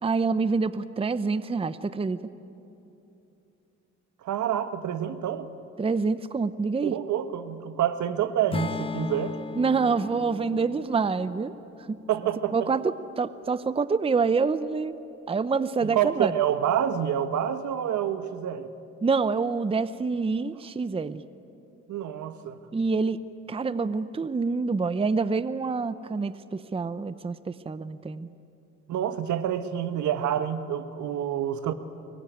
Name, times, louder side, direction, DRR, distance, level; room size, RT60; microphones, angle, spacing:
voice 1, 0.0-2.2 5.8-7.0 9.6-11.5 11.9-12.0 12.5-15.0 15.3-16.3 19.0-21.2 22.7-23.2 23.5-28.3, right 4 dB, 20° right, 14 dB, 0.7 m, -26 dB
voice 2, 4.2-5.5 6.8-9.4 12.1-12.5 15.8-18.7 21.9-22.6 28.9-31.7, right 10 dB, 75° right, 10 dB, 1.4 m, -28 dB
Acoustic guitar / Strum, 8.5-12.7, left 4 dB, 20° left, 0.8 m, -37 dB
24.0 x 22.0 x 9.4 m, 2.9 s
cardioid pair, 90°, 30 cm